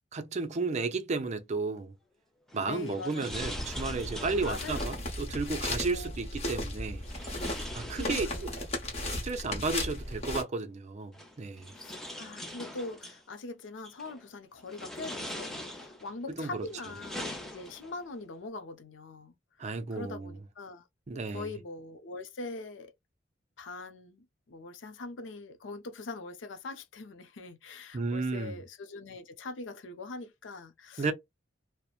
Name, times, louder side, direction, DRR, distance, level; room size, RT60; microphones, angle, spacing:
voice 1, 0.1-1.9 2.5-7.0 7.8-8.3 9.2-11.7 16.4-16.7 19.6-20.3 21.1-21.5 27.9-28.6 31.0-31.1, right 3 dB, 40° right, 0.4 m, -33 dB
sound 1, 2.5-5.0 7.0-8.7 10.0-10.1 11.1-13.2 13.8-14.2 14.7-16.1 16.6-18.0, left 1 dB, ahead, 0.7 m, -42 dB
voice 2, 2.7-3.5 4.4-5.0 5.9-6.2 7.9-8.6 11.7-20.9 21.3-22.9 23.6-31.1, left 3 dB, 75° left, 0.5 m, -42 dB
sound 2, 3.3-10.4, left 1 dB, 35° left, 1.0 m, -36 dB
2.8 x 2.1 x 2.3 m
head